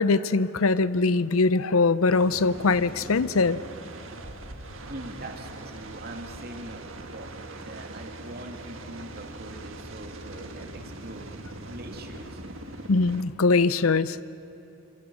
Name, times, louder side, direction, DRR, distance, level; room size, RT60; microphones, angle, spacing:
voice 1, 0.0-3.6 12.9-14.2, left 3 dB, 85° left, 16 dB, 0.7 m, -22 dB
sound 1, 2.1-13.2, right 2 dB, 70° right, 1.7 m, -41 dB
voice 2, 4.9-6.8 7.1-11.4 11.7-12.4, right 1 dB, 45° right, 3 dB, 2.7 m, -42 dB
27.5 x 25.5 x 6.4 m, 3.0 s
head